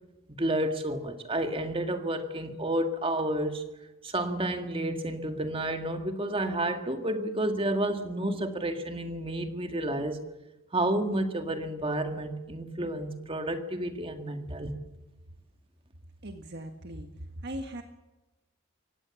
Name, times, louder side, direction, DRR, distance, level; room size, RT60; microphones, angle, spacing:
voice 1, 0.3-3.6 4.0-10.2 10.7-14.7, right 1 dB, 25° right, 6 dB, 1.9 m, -30 dB
voice 2, 16.2-17.1 17.4-17.8, right 1 dB, 50° right, 5 dB, 1.6 m, -39 dB
25.0 x 17.5 x 7.2 m, 1.1 s
head